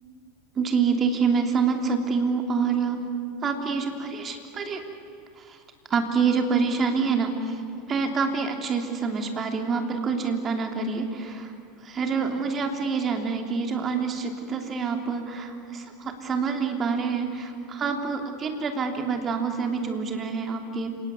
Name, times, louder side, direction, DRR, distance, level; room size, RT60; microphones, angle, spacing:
voice 1, 0.6-3.0 3.4-4.8 5.4-5.6 5.9-7.6 7.9-11.5 11.8-20.9, right 5 dB, 30° right, 4 dB, 3.1 m, -26 dB
29.5 x 18.5 x 9.6 m, 2.6 s
figure-of-eight pair, 80°, 0 cm